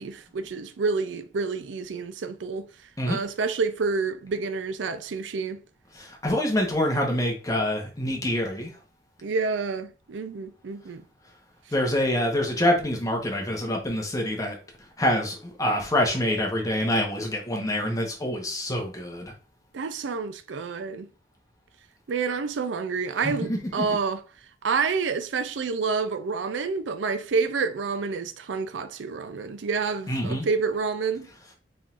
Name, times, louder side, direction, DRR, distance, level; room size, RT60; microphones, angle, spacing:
voice 1, 0.0-2.7 3.1-5.6 9.2-11.0 19.7-21.1 22.1-24.2 24.6-31.3, right 4 dB, 80° right, 0.5 m, -28 dB
voice 2, 6.0-8.7 11.7-14.6 15.0-19.3 23.5-23.6 30.1-30.4, left 1 dB, 20° left, 1.0 m, -26 dB
4.3 x 3.7 x 2.4 m
head